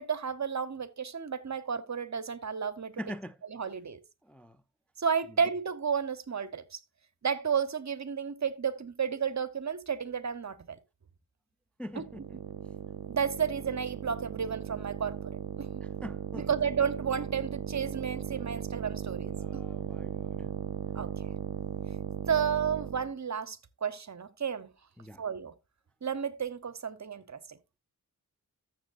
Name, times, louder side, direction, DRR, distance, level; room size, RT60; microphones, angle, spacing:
voice 1, 0.0-2.9 3.5-4.0 5.0-6.8 7.2-10.8 11.9-12.3 13.1-15.7 16.4-19.6 20.9-21.3 22.3-24.7 25.2-25.5 26.0-27.6, right 7 dB, 50° right, 0.8 m, -32 dB
voice 2, 3.0-3.4 4.3-4.5 11.8-12.2 16.0-16.5 19.3-20.5 25.0-25.2, equal, 5° left, 0.4 m, -42 dB
sound 1, 11.9-23.1, right 9 dB, 75° right, 0.6 m, -37 dB
13.0 x 7.4 x 2.5 m
wide cardioid pair, 75°, 37 cm